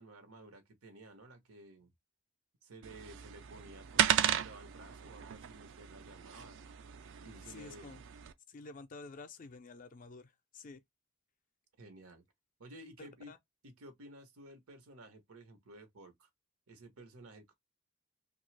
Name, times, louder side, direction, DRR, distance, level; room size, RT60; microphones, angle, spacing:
voice 1, 0.0-1.9 2.6-6.6 7.2-8.0 11.8-12.2 12.6-13.3 13.6-16.3 16.7-17.5, right 1 dB, 85° right, 1.0 m, -54 dB
sound 1, 2.8-8.3, right 10 dB, 60° right, 0.4 m, -35 dB
voice 2, 7.5-8.0 8.5-10.8 13.0-13.4, left 3 dB, 40° left, 0.4 m, -50 dB
2.8 x 2.3 x 3.2 m
head